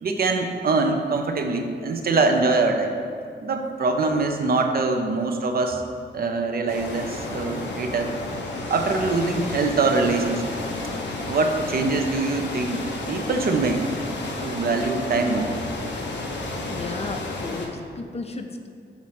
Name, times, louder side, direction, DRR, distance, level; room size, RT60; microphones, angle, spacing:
voice 1, 0.0-2.9 3.4-5.8 6.1-8.1 8.7-10.5 11.3-12.8 13.1-13.9 14.4-15.5, right 3 dB, 55° right, 4 dB, 0.6 m, -23 dB
sound 1, 6.7-17.7, left 2 dB, 80° left, 0.9 m, -31 dB
voice 2, 16.7-18.7, left 3 dB, 35° left, 5 dB, 0.5 m, -34 dB
7.1 x 3.1 x 5.7 m, 2.2 s
wide cardioid pair, 120°, 18 cm